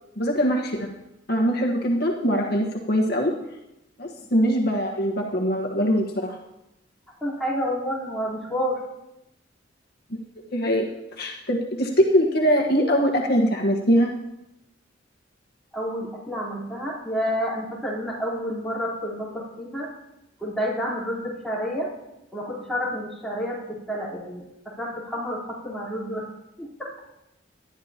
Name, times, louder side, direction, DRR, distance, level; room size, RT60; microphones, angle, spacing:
voice 1, 0.2-0.9 1.3-3.3 4.0-6.4 10.4-10.8 11.2-14.1, equal, 55° left, 0 dB, 1.4 m, -22 dB
voice 2, 7.2-8.8 15.7-19.9 20.4-21.9 22.3-26.3 26.6-27.0, equal, 5° left, -6 dB, 3.9 m, -29 dB
19.0 x 12.0 x 2.9 m, 0.91 s
head